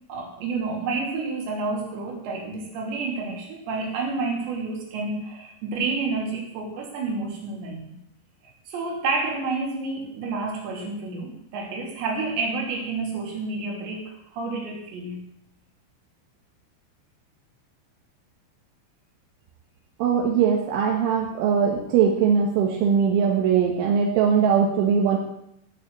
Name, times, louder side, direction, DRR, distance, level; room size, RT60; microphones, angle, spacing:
voice 1, 0.1-8.0 8.7-15.2, right 3 dB, 70° right, 0 dB, 5.0 m, -29 dB
voice 2, 20.0-25.2, right 7 dB, 85° right, 0 dB, 3.9 m, -21 dB
14.5 x 7.0 x 7.8 m, 0.76 s
omnidirectional pair, 5.4 m